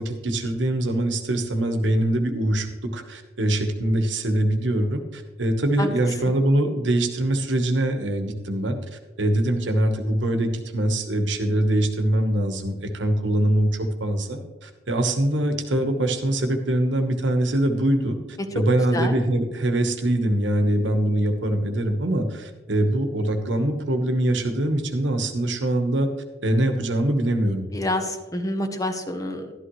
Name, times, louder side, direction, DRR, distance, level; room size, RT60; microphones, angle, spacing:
voice 1, 0.0-8.8 9.2-18.2 18.5-26.1 26.4-27.7, right 1 dB, 70° right, 6 dB, 1.2 m, -23 dB
voice 2, 5.8-6.1 18.5-18.6 18.9-19.2 27.7-29.5, left 1 dB, 20° left, 6 dB, 0.8 m, -28 dB
12.0 x 11.5 x 3.1 m, 1.3 s
head